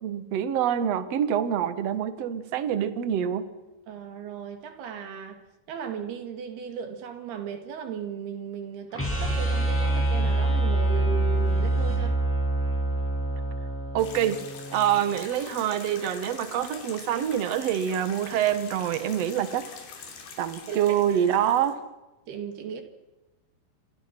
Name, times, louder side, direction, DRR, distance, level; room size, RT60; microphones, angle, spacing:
voice 1, 0.0-3.5 13.9-19.7 20.4-21.8, right 10 dB, 55° right, 1.9 m, -26 dB
voice 2, 3.9-5.4 5.7-12.2 20.7-20.8 22.3-22.8, right 7 dB, 75° right, 4.2 m, -36 dB
sound 1, 8.9-15.0, right 2 dB, 5° left, 7.6 m, -26 dB
sound 2, 14.0-21.7, left 6 dB, 80° left, 5.1 m, -44 dB
29.0 x 26.0 x 6.1 m
omnidirectional pair, 4.6 m